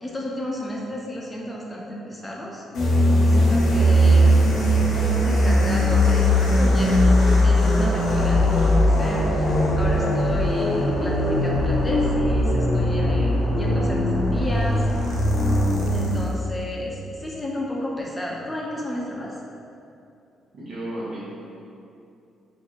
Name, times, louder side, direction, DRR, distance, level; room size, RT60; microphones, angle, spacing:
voice 1, 0.0-2.6 3.1-4.5 4.8-14.8 15.9-19.4, left 1 dB, 20° left, -3 dB, 0.6 m, -32 dB
sound 1, 2.7-16.4, equal, 75° left, 0.7 m, -19 dB
voice 2, 20.5-21.3, right 1 dB, 60° right, -10 dB, 1.0 m, -33 dB
4.2 x 2.6 x 2.4 m, 2.6 s
cardioid pair, 90°, 0 cm